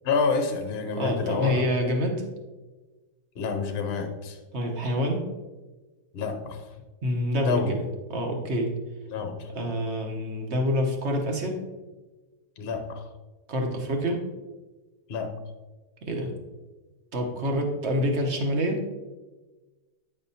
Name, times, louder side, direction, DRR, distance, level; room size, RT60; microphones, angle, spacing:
voice 1, 0.0-1.6 3.4-4.4 6.1-6.6 7.4-7.7 9.1-9.5 12.6-13.1 15.1-15.3, left 5 dB, 55° left, 5 dB, 0.8 m, -28 dB
voice 2, 1.0-2.2 4.5-5.2 7.0-7.8 8.1-8.7 9.5-11.6 13.5-14.2 16.0-16.3 17.1-18.9, equal, 45° right, 2 dB, 1.1 m, -27 dB
8.9 x 5.5 x 2.7 m, 1.2 s
omnidirectional pair, 1.8 m